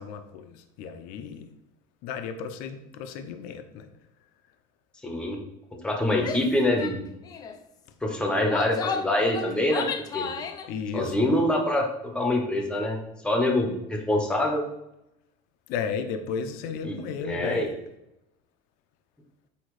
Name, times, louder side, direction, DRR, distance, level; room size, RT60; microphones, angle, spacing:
voice 1, 0.0-1.5 2.0-3.9 10.7-11.3 15.7-17.7, left 6 dB, 60° left, 8 dB, 0.7 m, -34 dB
voice 2, 5.0-5.4 5.8-7.0 8.0-9.9 10.1-10.3 10.9-14.6 16.8-17.0 17.2-17.7, left 1 dB, 5° left, 3 dB, 0.9 m, -25 dB
Female speech woman speaking / Yell, 6.2-6.5 6.8-7.0 7.2-7.6 8.3-10.7, left 6 dB, 25° left, 0.4 m, -33 dB
8.4 x 2.9 x 4.8 m, 0.85 s
cardioid pair, 170°, 17 cm